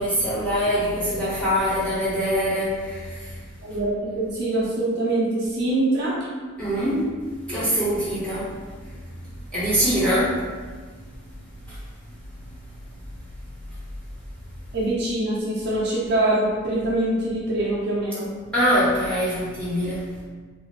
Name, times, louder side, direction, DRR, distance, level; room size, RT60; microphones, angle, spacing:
voice 1, 0.0-3.3 6.6-7.0 7.5-8.5 9.5-10.4 18.5-20.0, equal, 5° left, -11 dB, 1.2 m, -23 dB
voice 2, 3.6-6.2 14.7-18.3, right 1 dB, 50° right, -6 dB, 0.6 m, -24 dB
3.4 x 2.4 x 3.3 m, 1.4 s
head